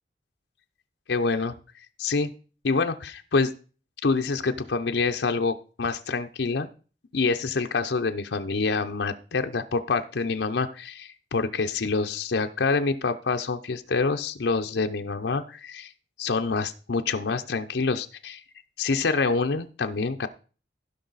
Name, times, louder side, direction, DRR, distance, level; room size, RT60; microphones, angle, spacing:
voice 1, 1.1-1.5 2.0-2.3 2.6-3.5 4.0-6.7 7.1-15.9 16.2-18.4 18.8-20.3, left 4 dB, 80° left, 6 dB, 0.6 m, -26 dB
15.5 x 5.4 x 4.0 m, 0.38 s
head